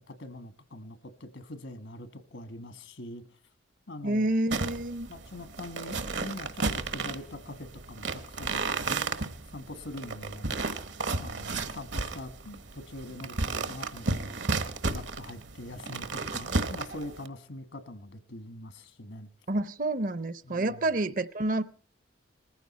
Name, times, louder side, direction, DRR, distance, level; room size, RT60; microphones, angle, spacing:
voice 1, 0.0-3.2 3.9-4.3 5.1-9.0 9.5-10.5 11.2-14.4 14.6-19.3 20.4-20.8, left 1 dB, 75° left, 1.3 m, -43 dB
voice 2, 4.0-5.1 19.5-21.6, right 2 dB, 45° right, 0.6 m, -28 dB
sound 1, 4.5-17.3, right 3 dB, 70° right, 1.2 m, -33 dB
20.0 x 14.5 x 4.1 m
head